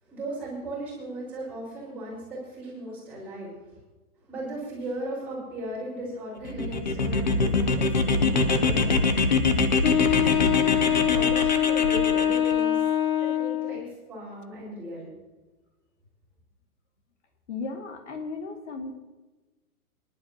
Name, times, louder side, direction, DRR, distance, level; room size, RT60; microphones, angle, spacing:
voice 1, 0.0-3.5 4.3-9.3 10.2-12.8 13.2-15.1, right 1 dB, 5° right, -10 dB, 4.8 m, -37 dB
sound 1, 6.4-12.5, left 3 dB, 30° left, 0.6 m, -24 dB
Wind instrument woodwind instrument, 9.8-13.9, left 11 dB, 70° left, 0.9 m, -24 dB
voice 2, 17.5-18.9, left 4 dB, 50° left, 3 dB, 2.2 m, -35 dB
23.0 x 11.5 x 2.9 m, 1.2 s
hypercardioid pair, 180°, 45 cm